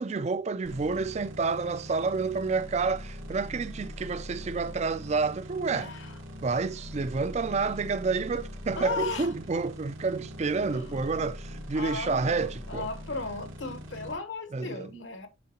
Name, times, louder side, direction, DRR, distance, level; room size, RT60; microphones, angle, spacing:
voice 1, 0.0-5.9 6.4-12.9 14.5-14.9, right 4 dB, 35° right, 0.3 m, -29 dB
sound 1, 0.6-14.2, equal, 85° right, 1.6 m, -42 dB
voice 2, 5.7-6.1 8.8-9.3 10.7-11.0 11.7-15.3, left 4 dB, 65° left, 1.0 m, -36 dB
9.3 x 3.7 x 2.8 m
head